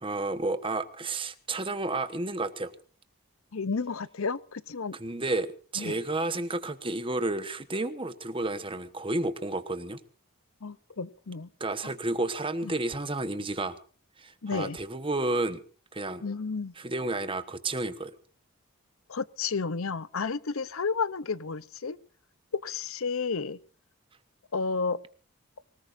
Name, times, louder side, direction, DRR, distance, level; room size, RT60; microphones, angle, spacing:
voice 1, 0.0-2.7 4.9-10.0 11.6-13.8 14.2-15.6 15.9-16.2 16.7-18.2, right 2 dB, 25° right, 11 dB, 1.1 m, -31 dB
voice 2, 3.5-4.9 5.8-5.9 10.6-11.5 14.4-14.8 16.2-16.7 19.1-22.0 22.6-23.6 24.5-25.0, left 4 dB, 70° left, 18 dB, 0.7 m, -31 dB
25.0 x 18.5 x 2.6 m, 0.42 s
head